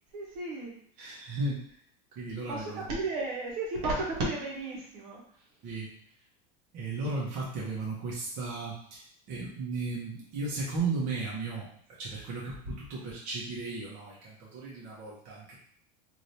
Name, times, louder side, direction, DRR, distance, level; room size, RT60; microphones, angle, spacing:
voice 1, 0.1-0.8 2.5-5.2, right 2 dB, 75° right, -3 dB, 1.3 m, -33 dB
voice 2, 1.0-1.6 2.2-2.9 5.6-5.9 6.7-11.7 12.0-15.6, right 3 dB, 45° right, -5 dB, 1.0 m, -35 dB
3.2 x 2.8 x 2.7 m, 0.62 s
supercardioid pair, 150°, 19 cm